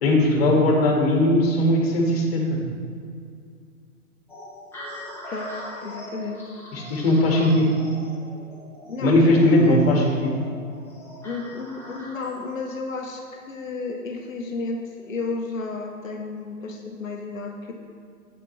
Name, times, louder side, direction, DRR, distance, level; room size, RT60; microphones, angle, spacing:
voice 1, 0.0-2.6 6.7-7.7 9.0-10.3, left 1 dB, 45° left, 0 dB, 1.7 m, -19 dB
sound 1, 4.3-12.5, equal, 5° left, 1.3 m, -41 dB
voice 2, 5.8-6.4 8.8-9.8 11.2-17.7, left 3 dB, 60° left, 2 dB, 0.9 m, -32 dB
8.3 x 6.6 x 3.0 m, 2.2 s
figure-of-eight pair, 120°, 44 cm